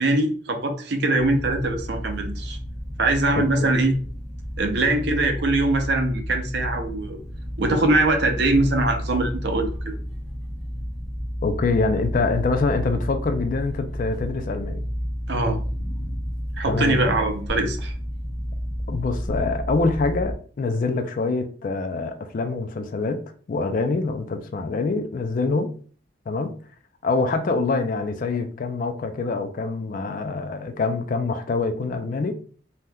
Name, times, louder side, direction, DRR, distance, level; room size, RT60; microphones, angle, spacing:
voice 1, 0.0-2.6 3.0-4.0 4.6-7.2 7.6-10.0 15.3-15.6 16.6-17.9, right 2 dB, 60° right, 0.5 m, -22 dB
sound 1, 1.2-20.3, equal, 5° left, 0.7 m, -31 dB
voice 2, 3.4-3.7 11.4-14.8 16.7-17.1 18.9-23.2 23.5-25.7 26.3-26.5 27.0-32.4, left 3 dB, 45° left, 0.3 m, -25 dB
3.4 x 2.7 x 2.2 m
head